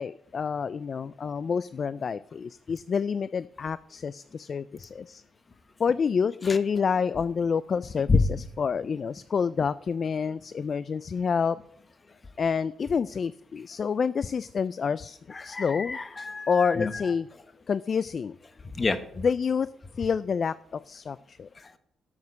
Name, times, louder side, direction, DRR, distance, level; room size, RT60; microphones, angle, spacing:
voice 1, 0.0-5.2 5.8-8.1 8.6-11.6 12.4-15.2 15.4-16.0 16.5-17.3 17.7-18.4 19.2-19.7 20.0-21.5, left 6 dB, 45° left, 17 dB, 0.3 m, -28 dB
voice 2, 15.3-17.1 18.6-19.0 21.5-21.8, left 3 dB, 30° left, 12 dB, 1.1 m, -28 dB
12.5 x 7.3 x 5.3 m, 0.71 s
cardioid pair, 90°, 0 cm